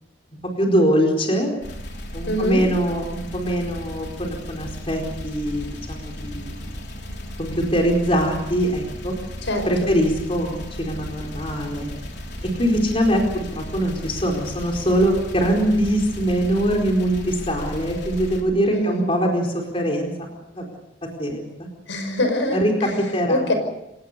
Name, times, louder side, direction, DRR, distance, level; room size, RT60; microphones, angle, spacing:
voice 1, 0.6-1.5 2.1-6.8 7.4-9.1 9.7-11.9 12.4-20.7 21.2-21.5 22.5-23.4, equal, 30° left, 1 dB, 4.5 m, -22 dB
sound 1, 1.6-18.4, left 1 dB, 60° left, 3.9 m, -35 dB
voice 2, 2.3-2.6 9.5-10.0 18.7-19.0 21.9-22.9 23.3-23.5, left 1 dB, 80° left, 7 dB, 5.5 m, -24 dB
28.0 x 18.0 x 6.9 m, 0.87 s
head